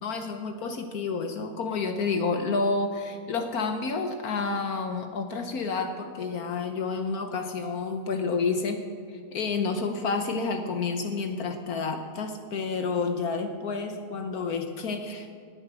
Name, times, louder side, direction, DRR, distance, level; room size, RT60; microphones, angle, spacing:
voice 1, 0.0-15.3, left 4 dB, 65° left, 6 dB, 1.4 m, -30 dB
18.5 x 9.2 x 6.2 m, 2.2 s
omnidirectional pair, 1.7 m